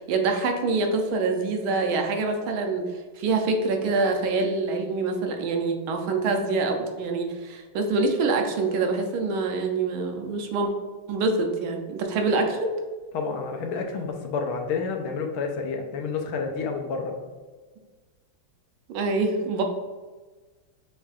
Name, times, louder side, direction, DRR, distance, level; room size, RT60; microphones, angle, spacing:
voice 1, 0.0-2.8 3.2-10.7 11.1-12.7 18.9-19.6, right 3 dB, 75° right, 4 dB, 1.4 m, -25 dB
voice 2, 13.1-17.2, left 5 dB, 80° left, 3 dB, 1.4 m, -29 dB
6.9 x 3.2 x 2.4 m, 1.3 s
omnidirectional pair, 2.4 m